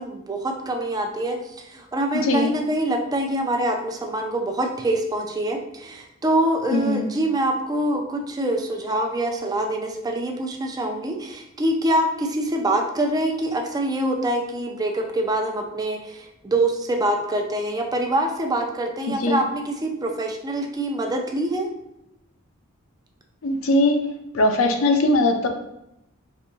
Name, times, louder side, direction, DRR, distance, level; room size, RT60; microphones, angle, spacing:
voice 1, 0.0-21.7, right 1 dB, 20° right, 3 dB, 0.4 m, -25 dB
voice 2, 6.7-7.0 19.2-19.4 23.4-24.0 24.3-25.5, left 2 dB, 75° left, 5 dB, 0.5 m, -20 dB
4.2 x 2.6 x 2.7 m, 0.86 s
head